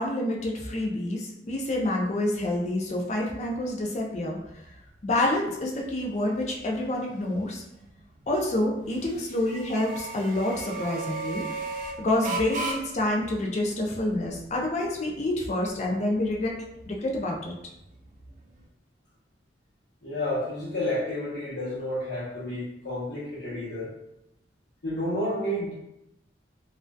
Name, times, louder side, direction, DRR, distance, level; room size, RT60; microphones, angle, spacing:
voice 1, 0.0-4.4 5.0-7.6 8.3-11.4 12.0-16.6 16.9-17.5, left 1 dB, 35° left, -1 dB, 0.4 m, -28 dB
sound 1, 1.5-18.7, right 3 dB, 40° right, 0.3 m, -40 dB
voice 2, 20.0-23.9 24.8-25.7, left 1 dB, 80° left, -12 dB, 0.9 m, -30 dB
2.5 x 2.2 x 2.2 m, 0.85 s
head